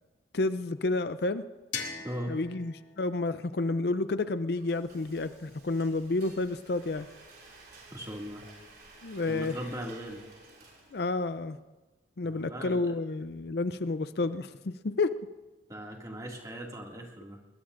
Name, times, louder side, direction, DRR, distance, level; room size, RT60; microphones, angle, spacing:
voice 1, 0.3-1.4 2.3-7.1 9.0-9.6 10.9-11.6 12.2-15.2, left 3 dB, 60° left, 12 dB, 0.5 m, -30 dB
sound 1, 1.7-4.6, left 6 dB, 85° left, 2.5 m, -42 dB
voice 2, 2.0-2.4 7.9-8.4 9.3-10.2 12.2-12.9 15.7-17.4, equal, 20° right, 0 dB, 2.2 m, -39 dB
Frying (food), 4.2-11.3, right 3 dB, 55° right, 5.7 m, -54 dB
21.5 x 21.0 x 2.6 m, 1.2 s
head